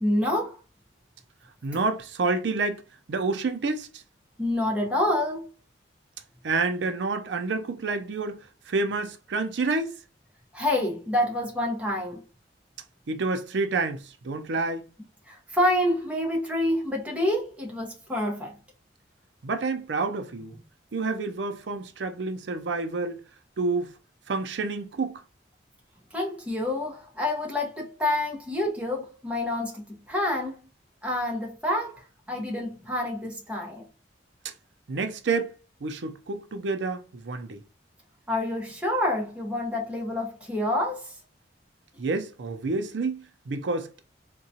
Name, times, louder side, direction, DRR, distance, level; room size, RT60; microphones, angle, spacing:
voice 1, 0.0-0.6 4.4-5.5 10.5-12.2 15.3-18.5 26.1-30.6 31.0-33.8 38.3-41.1, left 1 dB, 5° right, 0.8 m, -27 dB
voice 2, 1.6-2.8 3.1-3.9 6.4-8.4 8.7-9.9 13.1-14.9 19.4-20.6 20.9-23.2 23.6-23.9 24.3-25.2 34.9-35.5 35.8-37.6 42.0-44.0, right 3 dB, 75° right, 0.5 m, -28 dB
3.7 x 2.2 x 2.7 m
head